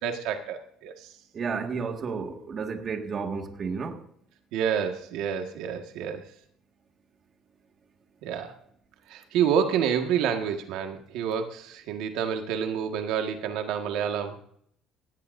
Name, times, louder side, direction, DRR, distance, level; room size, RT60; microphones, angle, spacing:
voice 1, 0.0-0.9 4.5-6.2 8.2-8.5 9.1-14.4, right 8 dB, 80° right, 1.7 m, -28 dB
voice 2, 1.3-4.0, right 5 dB, 35° right, 1.9 m, -32 dB
17.0 x 17.0 x 2.7 m
cardioid pair, 135°, 0 cm